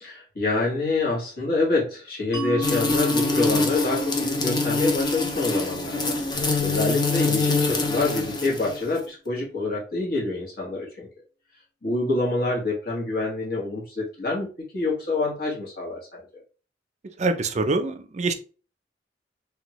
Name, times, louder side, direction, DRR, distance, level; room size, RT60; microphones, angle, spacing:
voice 1, 0.0-11.1 11.8-14.5 14.7-16.2, left 2 dB, 60° left, -3 dB, 1.3 m, -27 dB
Mallet percussion, 2.3-7.7, left 3 dB, 85° left, 1.4 m, -33 dB
sound 1, 2.6-9.0, left 3 dB, 25° left, 0.6 m, -25 dB
voice 2, 17.2-18.3, right 3 dB, 40° right, 7 dB, 0.4 m, -24 dB
3.4 x 2.2 x 2.9 m, 0.36 s
head